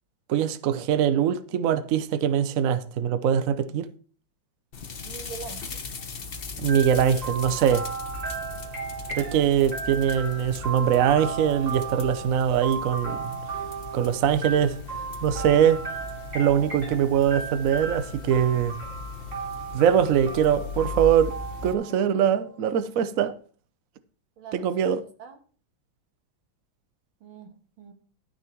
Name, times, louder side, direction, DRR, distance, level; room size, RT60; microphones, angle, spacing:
voice 1, 0.3-3.9 6.6-7.8 9.1-13.4 13.9-14.7 15.2-15.8 16.3-18.7 19.7-21.3 21.6-23.3 24.5-25.0, right 9 dB, 65° right, 0.8 m, -22 dB
sound 1, 4.7-21.7, left 5 dB, 40° left, 0.9 m, -39 dB
voice 2, 5.0-5.9 24.4-25.4 27.2-27.9, right 6 dB, 85° right, 2.3 m, -44 dB
sound 2, 6.7-22.5, right 5 dB, 35° right, 3.3 m, -36 dB
12.0 x 6.5 x 4.5 m
omnidirectional pair, 2.2 m